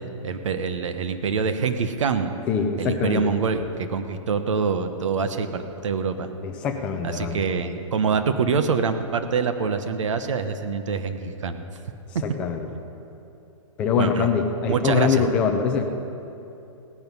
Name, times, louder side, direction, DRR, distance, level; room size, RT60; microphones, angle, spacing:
voice 1, 0.0-2.3 2.8-6.3 7.0-11.6 14.0-14.3 14.7-15.2, right 5 dB, 65° right, 8 dB, 1.1 m, -25 dB
voice 2, 2.5-3.3 6.4-7.4 12.2-12.7 13.8-15.9, left 6 dB, 5° left, 4 dB, 0.3 m, -23 dB
17.0 x 11.0 x 5.5 m, 2.8 s
hypercardioid pair, 175°, 17 cm